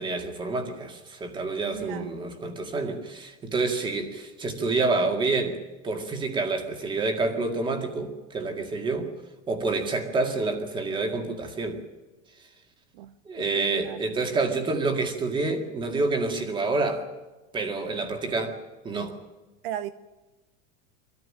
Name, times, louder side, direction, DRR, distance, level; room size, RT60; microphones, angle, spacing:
voice 1, 0.0-9.1 9.5-11.8 13.3-17.0 17.5-18.6 18.8-19.1, right 3 dB, 15° right, 6 dB, 2.1 m, -28 dB
voice 2, 1.7-2.1 12.9-14.0 19.6-19.9, right 12 dB, 55° right, 13 dB, 0.9 m, -37 dB
24.5 x 14.0 x 8.7 m, 1.2 s
supercardioid pair, 180°, 32 cm